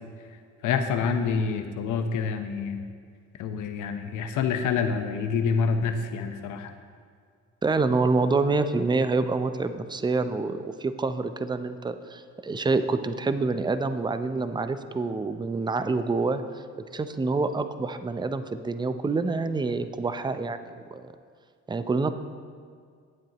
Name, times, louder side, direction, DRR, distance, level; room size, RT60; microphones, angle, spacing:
voice 1, 0.6-2.8 3.4-6.7, left 5 dB, 85° left, 7 dB, 0.9 m, -27 dB
voice 2, 7.6-16.4 16.9-21.1 21.7-22.1, right 3 dB, 15° right, 10 dB, 0.5 m, -27 dB
17.5 x 7.7 x 2.9 m, 2.1 s
cardioid pair, 90°, 30 cm